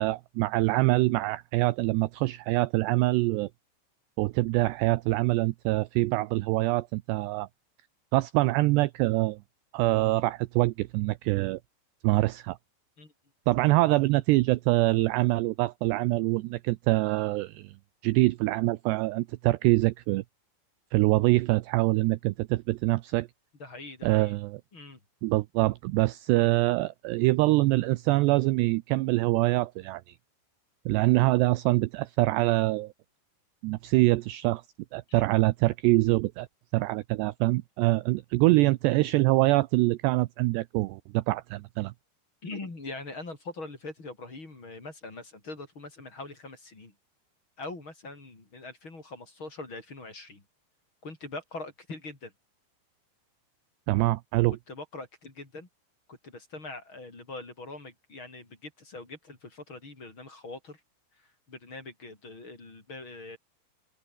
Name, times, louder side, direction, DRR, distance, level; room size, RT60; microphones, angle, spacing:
voice 1, 0.0-3.5 4.2-7.5 8.1-9.4 9.7-11.6 12.0-12.6 13.5-17.7 18.0-20.2 20.9-23.3 24.0-24.6 25.2-30.2 30.9-32.9 33.6-34.6 34.9-36.5 36.7-41.9 53.9-54.6, right 20 dB, 85° right, 2.4 m, -24 dB
voice 2, 23.6-24.4 24.7-25.0 35.1-35.2 42.4-46.9 47.6-50.4 51.0-52.3 54.5-55.7 56.1-60.8 61.2-63.4, left 2 dB, 25° left, 5.5 m, -42 dB
open air
omnidirectional pair, 5.6 m